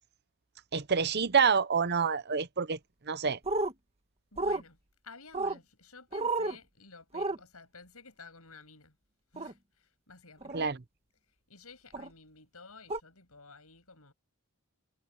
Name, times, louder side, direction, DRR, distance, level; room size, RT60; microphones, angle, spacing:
voice 1, 0.7-2.8 3.1-3.4 10.5-10.8, right 6 dB, 45° right, 0.8 m, -27 dB
sound 1, 3.4-3.7 4.4-4.6 5.3-5.6 6.1-6.6 7.1-7.4 9.4-9.5 10.4-10.7 11.9-12.1 12.9-13.0, right 2 dB, 30° right, 1.5 m, -31 dB
voice 2, 4.3-4.8 5.0-8.9 9.3-10.6 11.5-14.1, left 4 dB, 75° left, 7.9 m, -53 dB
head